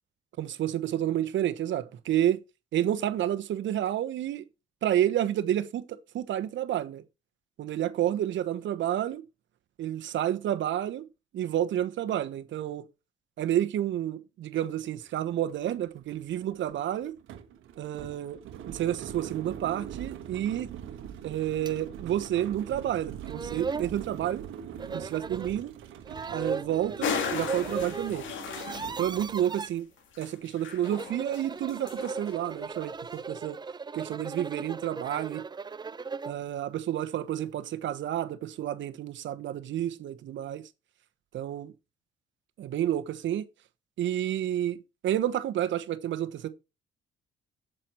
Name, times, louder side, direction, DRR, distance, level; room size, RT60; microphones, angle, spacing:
voice 1, 0.4-2.4 2.7-4.4 4.8-7.0 7.6-9.2 9.8-11.1 11.3-12.9 13.4-17.2 17.8-18.4 18.7-20.7 21.2-24.4 24.9-25.7 26.3-28.3 29.0-29.9 30.2-33.6 33.9-35.4 36.2-40.7 41.3-41.7 42.6-43.5 44.0-44.8 45.0-46.5, right 11 dB, 70° right, 1.1 m, -30 dB
sound 1, 14.6-14.7 15.0-29.8, right 9 dB, 90° right, 1.2 m, -43 dB
sound 2, 21.7-21.8 22.2-22.3 23.0-23.1 23.3-23.9 24.8-25.5 26.1-28.1 28.4-29.7 30.7-36.4, right 5 dB, 20° right, 0.5 m, -37 dB
sound 3, 27.0-29.2 29.6-29.7 30.1-31.4 31.7-32.3, left 6 dB, 75° left, 2.1 m, -35 dB
7.7 x 7.7 x 4.4 m
cardioid pair, 90°, 20 cm